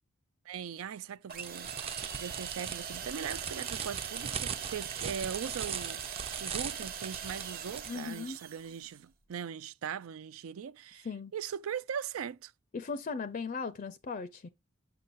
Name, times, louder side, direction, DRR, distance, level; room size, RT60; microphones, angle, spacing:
voice 1, 0.5-11.1 11.3-12.5, right 7 dB, 90° right, 0.4 m, -40 dB
sound 1, 1.3-7.9, right 7 dB, 30° right, 0.4 m, -39 dB
sound 2, 1.3-8.9, right 7 dB, 45° right, 0.9 m, -42 dB
voice 2, 7.9-8.4 11.0-11.3 12.7-14.5, left 4 dB, 40° left, 0.4 m, -37 dB
6.9 x 6.5 x 2.5 m
head